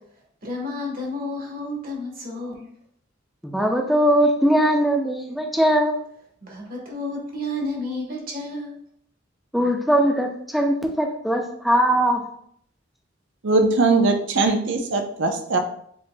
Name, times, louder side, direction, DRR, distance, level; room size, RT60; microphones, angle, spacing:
voice 1, 0.4-2.7 6.4-8.8, left 1 dB, 45° right, -2 dB, 1.5 m, -31 dB
voice 2, 3.4-6.0 9.5-12.2, equal, ahead, 2 dB, 0.6 m, -20 dB
voice 3, 13.4-15.6, right 3 dB, 65° right, 5 dB, 0.7 m, -20 dB
7.5 x 3.0 x 2.2 m, 0.66 s
head